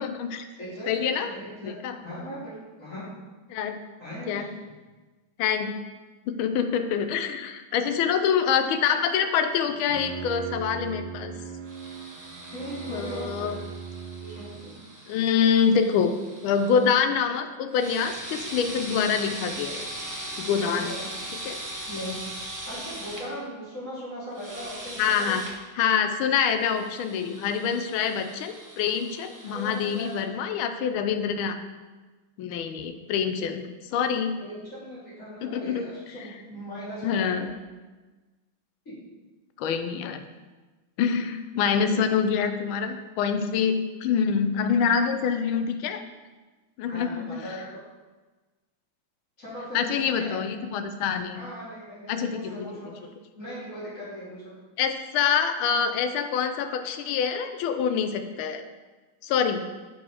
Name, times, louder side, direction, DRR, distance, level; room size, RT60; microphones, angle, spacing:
voice 1, 0.0-0.4 0.9-1.3 1.6-2.0 3.5-3.8 4.3-4.5 5.4-5.8 6.3-11.3 12.9-13.6 15.1-16.1 16.4-19.9 20.4-20.9 21.4-21.6 25.0-25.4 25.8-31.6 32.4-34.4 35.4-35.8 37.0-37.5 39.6-40.2 41.0-46.0 46.8-47.4 49.7-51.4 52.1-52.4 54.8-58.6 59.2-59.7, left 7 dB, 80° left, 8 dB, 1.4 m, -26 dB
voice 2, 0.6-1.7 2.0-3.0 4.0-4.7 12.5-13.6 14.2-14.8 20.5-21.1 21.9-22.2 22.7-25.3 29.4-30.2 34.4-37.5 38.8-38.9 41.8-42.0 46.9-47.8 49.4-50.4 51.3-53.1 53.3-54.4, equal, 35° left, -10 dB, 3.1 m, -38 dB
Bowed string instrument, 9.7-14.8, right 7 dB, 85° right, 1.5 m, -39 dB
sound 1, 11.7-16.9 17.7-23.2 24.3-25.5 26.6-30.2, right 1 dB, 25° right, 0.4 m, -40 dB
7.7 x 4.8 x 4.8 m, 1.3 s
omnidirectional pair, 2.3 m